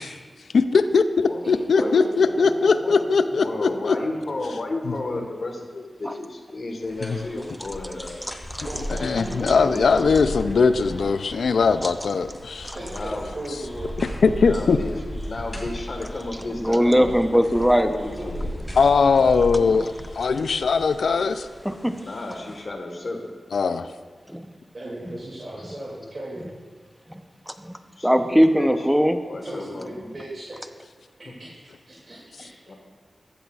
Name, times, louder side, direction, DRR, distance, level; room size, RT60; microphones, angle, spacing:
voice 1, 0.5-4.0 4.9-5.0 7.0-7.2 9.0-12.7 14.0-14.8 18.8-21.5 23.5-23.9, left 5 dB, 85° left, 11 dB, 0.3 m, -20 dB
voice 2, 1.8-3.4 3.9-4.2 5.1-5.2 8.2-8.3 8.6-10.5 11.5-11.6 12.7-14.0 14.4-14.5 18.3-18.5 24.7-26.5 29.4-30.6 31.4-31.6 31.9-32.5, right 1 dB, 55° right, -8 dB, 2.3 m, -36 dB
voice 3, 3.4-8.2 9.6-9.7 12.7-13.3 14.5-14.9 15.3-17.1 17.8-18.6 22.0-23.2 28.0-28.7 29.3-29.9 32.7-32.8, left 2 dB, 60° left, 2 dB, 1.3 m, -33 dB
sound 1, 6.8-22.6, equal, 15° left, 2.4 m, -36 dB
voice 4, 8.2-8.7 11.8-11.9 12.6-12.8 16.6-18.0 21.6-21.9 24.3-24.5 25.1-25.2 27.1-27.8 28.0-29.2, equal, 5° right, 8 dB, 0.7 m, -21 dB
15.0 x 8.0 x 2.4 m, 1.5 s
cardioid pair, 60°, 0 cm